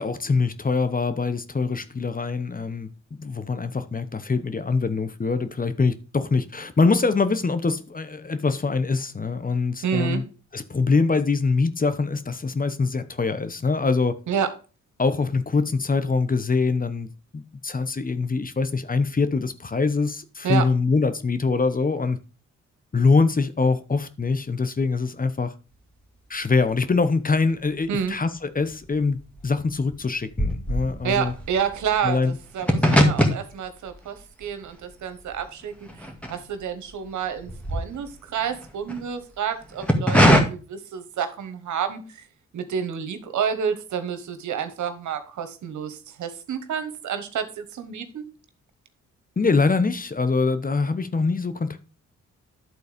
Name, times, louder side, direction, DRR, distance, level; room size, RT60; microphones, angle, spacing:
voice 1, 0.0-10.2 10.5-14.2 15.0-22.2 22.9-25.5 26.3-29.2 29.4-31.3 32.0-32.4 32.8-33.0 49.4-51.9, left 4 dB, 30° left, 0.9 m, -24 dB
voice 2, 9.8-10.3 14.3-14.5 20.4-20.6 27.9-28.2 31.0-42.2 42.5-48.3, right 7 dB, 85° right, 1.2 m, -29 dB
sound 1, 27.6-28.4 28.6-36.9 37.2-39.0 39.6-40.4, equal, 5° left, 2.0 m, -23 dB
11.0 x 4.0 x 5.1 m
cardioid pair, 65°, 29 cm